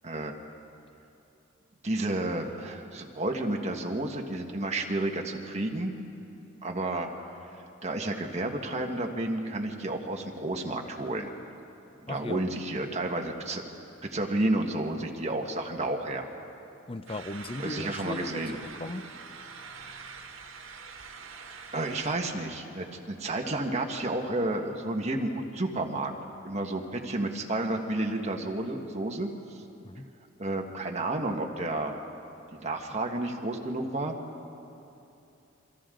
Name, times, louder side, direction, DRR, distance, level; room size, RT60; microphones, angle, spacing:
voice 1, 1.8-5.9 6.6-7.1 7.8-11.3 12.1-13.6 14.1-16.2 17.6-18.5 21.2-21.3 21.7-26.1 26.4-29.3 30.4-32.0 32.5-34.2, right 2 dB, 35° right, 2 dB, 1.6 m, -31 dB
voice 2, 12.1-12.5 16.9-19.1 29.8-30.1, left 2 dB, 30° left, 11 dB, 0.6 m, -37 dB
sound 1, 17.1-22.2, right 5 dB, 85° right, 1.6 m, -44 dB
28.0 x 24.0 x 3.9 m, 2.8 s
head